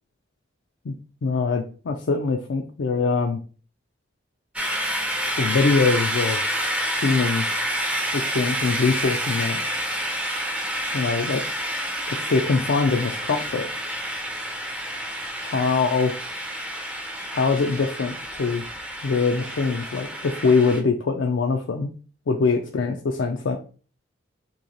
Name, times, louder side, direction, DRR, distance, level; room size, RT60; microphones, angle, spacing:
voice 1, 1.2-3.4 5.4-6.4 7.0-7.6 8.1-9.6 10.9-11.4 12.1-13.7 15.4-16.1 17.3-18.6 19.0-21.9 22.3-23.6, left 4 dB, 80° left, 3 dB, 0.4 m, -23 dB
sound 1, 4.6-20.8, equal, 5° right, 0.4 m, -28 dB
3.1 x 2.8 x 3.9 m, 0.39 s
head